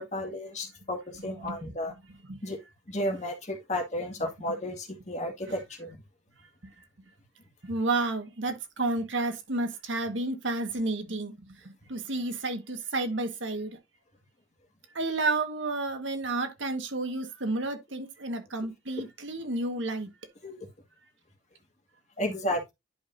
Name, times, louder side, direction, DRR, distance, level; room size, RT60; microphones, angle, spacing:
voice 1, 0.0-1.9 2.4-2.6 2.9-6.0 20.4-20.6 22.2-22.7, left 1 dB, 40° left, 2.1 m, -33 dB
voice 2, 1.4-1.7 2.3-2.4 5.5-5.6 7.6-11.3 11.9-13.8 14.9-20.1, right 2 dB, 85° right, 1.6 m, -31 dB
11.0 x 5.3 x 2.7 m
head